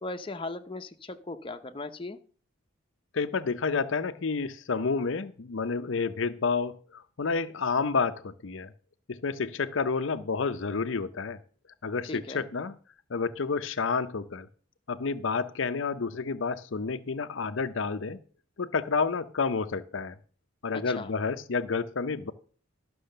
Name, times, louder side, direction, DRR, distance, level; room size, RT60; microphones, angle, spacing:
voice 1, 0.0-2.2 12.1-12.5 20.7-21.1, left 2 dB, 25° left, 5 dB, 0.8 m, -38 dB
voice 2, 3.1-8.7 9.1-11.4 11.8-12.7 13.1-14.5 14.9-18.2 18.6-20.2 20.6-22.3, left 4 dB, 70° left, 9 dB, 0.6 m, -30 dB
12.0 x 6.2 x 6.6 m, 0.42 s
head